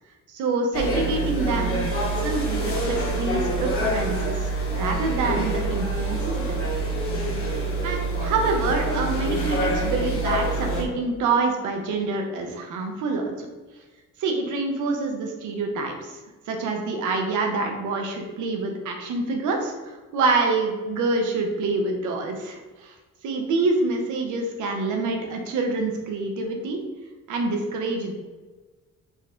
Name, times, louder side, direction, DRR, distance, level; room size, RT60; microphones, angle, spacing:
voice 1, 0.3-1.8 2.2-6.7 7.8-13.5 14.2-16.2 16.5-22.9 23.2-26.8 27.3-28.1, right 3 dB, 80° right, 3 dB, 0.7 m, -26 dB
sound 1, 0.7-10.8, right 2 dB, 45° left, 1.3 m, -26 dB
3.9 x 2.2 x 3.7 m, 1.3 s
cardioid pair, 90°, 30 cm